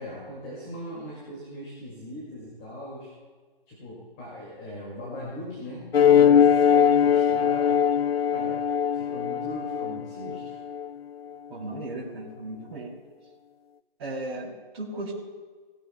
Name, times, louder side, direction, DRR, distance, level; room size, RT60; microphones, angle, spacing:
voice 1, 0.0-3.1 3.7-5.9 6.1-7.8 8.3-10.5, left 1 dB, 15° left, -5 dB, 2.3 m, -39 dB
sound 1, 5.9-10.9, left 8 dB, 90° left, 0.5 m, -21 dB
voice 2, 11.5-12.9 14.0-15.1, right 2 dB, 25° right, -7 dB, 3.3 m, -36 dB
19.0 x 14.0 x 2.3 m, 1.4 s
figure-of-eight pair, 160°, 30 cm